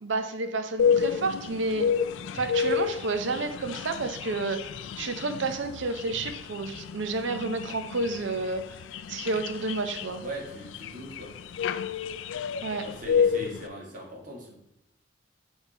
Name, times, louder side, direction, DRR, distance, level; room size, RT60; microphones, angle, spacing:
voice 1, 0.0-1.9 2.3-4.6 5.0-8.6 9.1-10.2 12.6-12.8, right 3 dB, 75° right, 8 dB, 0.7 m, -30 dB
sound 1, 0.8-13.6, left 7 dB, 75° left, 0.3 m, -30 dB
voice 2, 10.2-11.3 12.8-14.5, right 1 dB, 45° right, -1 dB, 1.6 m, -40 dB
7.1 x 3.5 x 4.1 m, 0.83 s
head